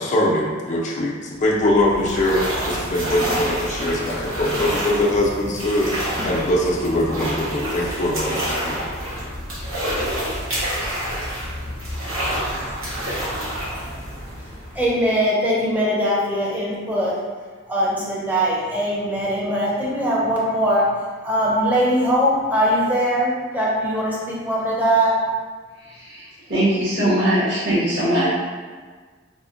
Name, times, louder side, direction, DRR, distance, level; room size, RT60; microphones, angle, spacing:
voice 1, 0.0-8.8, left 1 dB, 40° left, -3 dB, 0.5 m, -22 dB
sound 1, 1.4-15.1, equal, 90° right, 1.1 m, -28 dB
voice 2, 14.7-17.2 17.7-20.9 21.2-25.1, equal, 10° right, -6 dB, 0.6 m, -21 dB
voice 3, 26.0-28.2, right 1 dB, 60° right, -12 dB, 1.0 m, -21 dB
4.2 x 2.1 x 2.4 m, 1.5 s
head